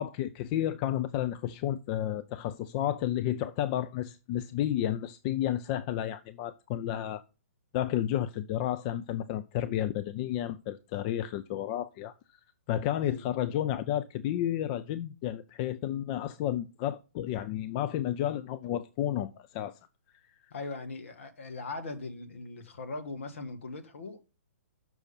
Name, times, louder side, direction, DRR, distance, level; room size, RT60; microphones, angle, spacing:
voice 1, 0.0-7.2 7.7-12.1 12.7-19.8, left 12 dB, 30° left, 0.4 m, -31 dB
voice 2, 20.5-24.2, left 3 dB, 60° left, 1.5 m, -40 dB
6.5 x 6.1 x 5.4 m
figure-of-eight pair, 125°, 8 cm